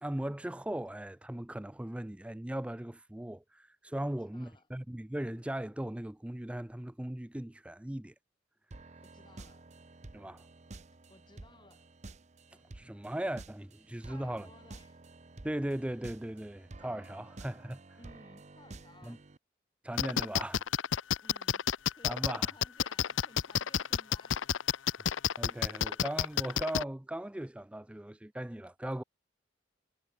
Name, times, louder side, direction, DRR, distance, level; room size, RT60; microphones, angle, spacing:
voice 1, 0.0-8.1 10.1-10.4 12.7-14.5 15.4-17.8 19.0-19.2 19.8-20.6 22.0-22.5 25.4-29.0, right 1 dB, 5° right, 0.4 m, -38 dB
voice 2, 4.1-4.7 9.0-9.7 11.1-11.9 14.0-15.0 18.0-19.3 21.2-21.6 21.9-24.5, left 2 dB, 25° left, 5.0 m, -59 dB
sound 1, 8.7-19.4, right 2 dB, 35° right, 0.8 m, -51 dB
sound 2, 20.0-26.8, left 8 dB, 85° left, 0.7 m, -29 dB
head